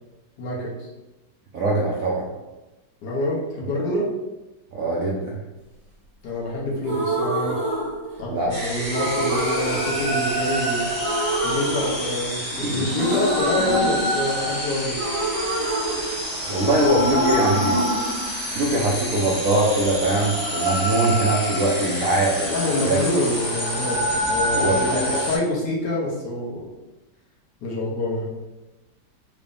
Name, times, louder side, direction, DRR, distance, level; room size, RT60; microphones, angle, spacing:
voice 1, 0.4-0.9 3.0-4.0 6.2-7.6 8.2-10.9 11.4-15.0 17.2-17.6 22.5-26.7 27.6-28.3, left 1 dB, 65° left, -4 dB, 1.3 m, -26 dB
voice 2, 1.5-2.3 4.7-5.3 8.3-8.5 12.6-12.9 16.4-17.8 18.5-23.0 24.5-25.0, right 2 dB, 75° right, -3 dB, 0.8 m, -22 dB
sound 1, 6.8-8.5 8.9-10.7 10.9-12.5 12.9-16.6 16.9-18.9, right 1 dB, 30° right, 0.7 m, -27 dB
sound 2, 8.5-25.4, equal, 15° left, 1.1 m, -27 dB
3.8 x 3.4 x 2.5 m, 1.1 s
omnidirectional pair, 2.1 m